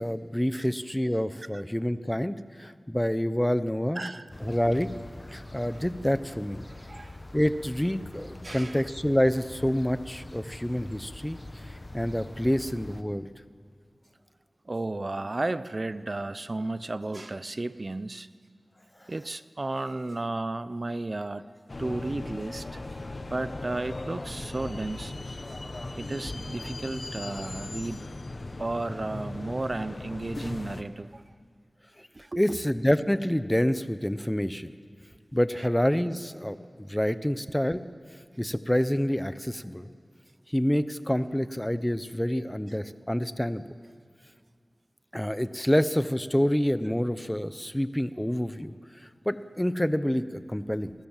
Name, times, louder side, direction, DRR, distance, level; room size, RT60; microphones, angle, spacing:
voice 1, 0.0-4.1 4.4-4.9 5.3-6.6 7.3-11.4 11.6-13.3 32.0-32.1 32.4-34.7 35.3-36.6 36.9-37.8 38.4-39.9 40.5-43.6 45.1-48.7 49.2-50.9, equal, 10° left, 12 dB, 1.0 m, -27 dB
voice 2, 3.9-4.3 5.7-5.8 6.7-7.2 8.4-8.8 14.6-18.3 19.1-21.5 21.8-22.8 23.3-25.1 25.9-28.1 28.6-31.2 32.1-32.6 35.6-35.7, right 2 dB, 45° right, 14 dB, 0.8 m, -33 dB
sound 1, 4.3-13.0, left 2 dB, 35° left, 1.3 m, -44 dB
sound 2, 21.7-30.8, left 2 dB, 55° left, 1.4 m, -38 dB
29.5 x 21.0 x 7.5 m, 2.1 s
wide cardioid pair, 55°, 0 cm